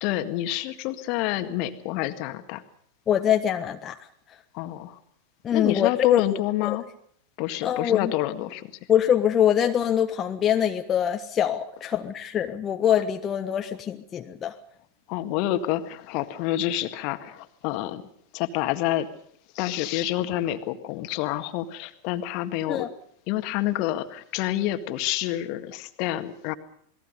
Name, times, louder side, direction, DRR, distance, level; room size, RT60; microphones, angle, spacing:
voice 1, 0.0-2.6 4.5-5.0 5.5-6.9 7.4-8.7 15.1-18.0 18.3-19.1 19.6-22.9 23.3-26.5, left 14 dB, 45° left, 10 dB, 1.8 m, -28 dB
voice 2, 3.1-4.0 5.4-6.8 7.6-8.1 8.9-14.5 22.7-22.9, left 9 dB, 25° left, 5 dB, 1.4 m, -24 dB
28.5 x 20.5 x 5.5 m, 0.64 s
figure-of-eight pair, 90°, 0 cm